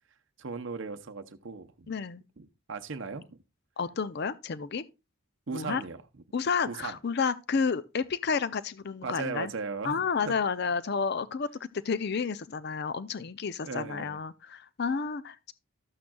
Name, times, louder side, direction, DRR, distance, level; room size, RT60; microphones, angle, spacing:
voice 1, 0.4-1.9 2.4-3.2 5.5-6.0 6.7-7.0 9.0-10.1 13.6-14.2, right 4 dB, 60° right, 0.7 m, -37 dB
voice 2, 1.9-2.2 3.8-4.8 5.5-5.8 6.3-9.5 9.8-15.5, left 5 dB, 50° left, 0.5 m, -31 dB
12.5 x 8.7 x 2.3 m
head